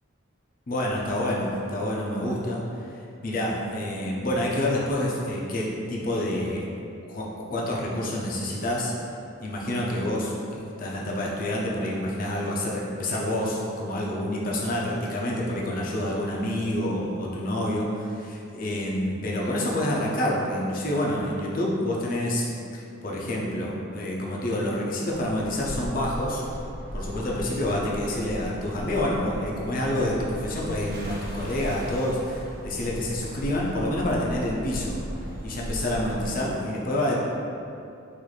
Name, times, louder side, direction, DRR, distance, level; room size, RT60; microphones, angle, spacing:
voice 1, 0.7-2.9 3.2-6.7 7.1-8.9 9.4-22.4 22.7-26.4 26.9-35.0 35.4-37.2, left 1 dB, 40° left, -3 dB, 0.5 m, -28 dB
sound 1, 25.1-36.3, equal, 45° right, 0.5 m, -37 dB
3.1 x 2.5 x 3.9 m, 2.7 s
head